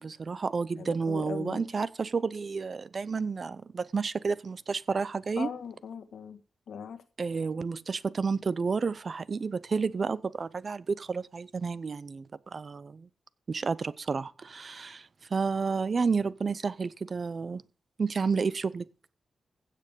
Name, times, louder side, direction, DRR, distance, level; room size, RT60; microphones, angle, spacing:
voice 1, 0.0-5.5 7.2-13.1 13.5-17.6 18.0-18.9, right 5 dB, 45° right, 0.6 m, -31 dB
voice 2, 0.8-1.7 5.4-6.4 6.7-7.0, left 7 dB, 80° left, 1.6 m, -39 dB
15.5 x 6.7 x 5.2 m
cardioid pair, 95°, 0 cm